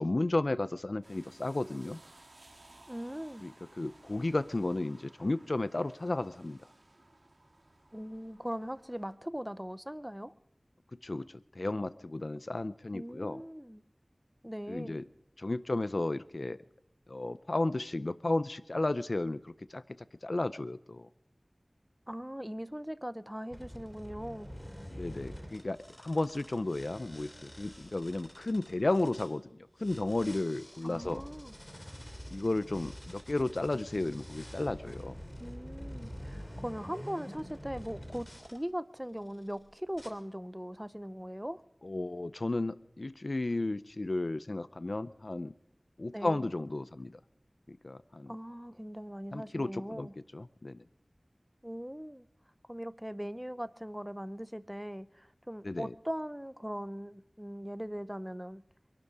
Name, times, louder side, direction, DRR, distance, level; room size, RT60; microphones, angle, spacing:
voice 1, 0.0-2.0 3.4-3.5 3.8-6.6 11.0-11.3 11.6-13.4 14.7-15.0 15.4-16.6 17.1-19.8 20.2-21.1 24.9-29.4 29.8-31.2 32.3-35.2 41.8-45.5 46.0-47.2 47.7-48.3 49.3-50.8 55.6-55.9, left 2 dB, 70° left, 0.5 m, -33 dB
sound 1, 1.0-9.1, right 2 dB, 70° right, 2.3 m, -59 dB
voice 2, 2.9-3.5 7.9-10.3 12.9-13.8 14.4-15.0 22.1-24.5 30.8-31.6 35.4-41.6 46.1-46.5 48.3-50.2 51.6-52.3 52.7-58.6, equal, 10° right, 0.7 m, -40 dB
sound 2, 23.5-29.3 29.8-38.6 39.2-39.5 39.9-40.1, equal, 15° left, 2.9 m, -47 dB
22.5 x 12.0 x 4.8 m
wide cardioid pair, 45°, 0 cm